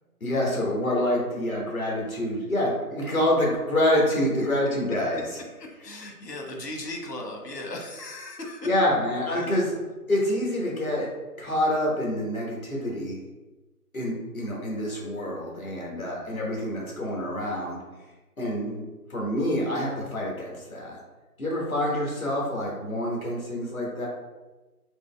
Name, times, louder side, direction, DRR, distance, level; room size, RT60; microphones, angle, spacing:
voice 1, 0.2-5.2 8.6-9.7 10.1-11.1 11.4-13.2 13.9-17.8 18.4-18.8 19.1-21.0 21.4-24.1, left 1 dB, 60° left, -3 dB, 1.2 m, -27 dB
voice 2, 4.1-4.6 5.2-8.7 9.3-9.8, left 1 dB, 85° left, 1 dB, 1.2 m, -38 dB
5.0 x 2.0 x 3.3 m, 1.2 s
figure-of-eight pair, 175°, 47 cm